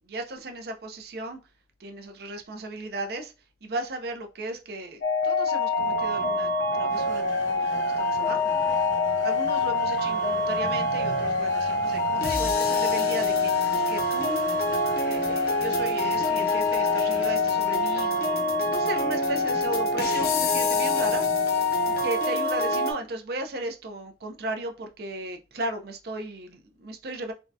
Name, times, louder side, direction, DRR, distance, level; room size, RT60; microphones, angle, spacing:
voice 1, 0.0-1.4 1.8-3.3 3.6-8.8 9.2-14.5 15.0-27.3, right 2 dB, 55° right, 0.5 m, -36 dB
sound 1, 5.0-22.9, left 2 dB, 50° left, 0.5 m, -25 dB
sound 2, 5.8-22.1, left 1 dB, 85° left, 0.8 m, -42 dB
3.5 x 2.2 x 2.6 m
head